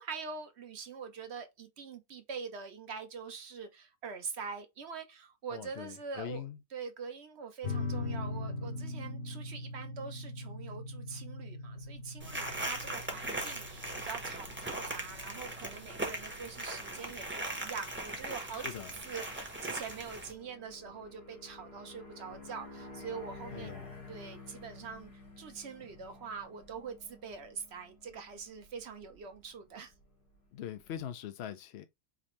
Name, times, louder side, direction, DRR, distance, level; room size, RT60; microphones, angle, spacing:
voice 1, 0.0-6.4 6.7-23.8 24.1-25.1 25.4-29.9, right 5 dB, 50° right, 0.9 m, -44 dB
voice 2, 5.5-6.6 18.5-19.0 23.5-24.0 30.5-31.8, left 10 dB, 65° left, 0.6 m, -42 dB
sound 1, 7.6-18.6, left 2 dB, 50° left, 1.1 m, -42 dB
sound 2, 11.7-31.0, left 3 dB, 85° left, 2.4 m, -54 dB
sound 3, 12.2-20.3, right 1 dB, 10° right, 0.8 m, -39 dB
5.0 x 2.7 x 3.1 m
omnidirectional pair, 1.6 m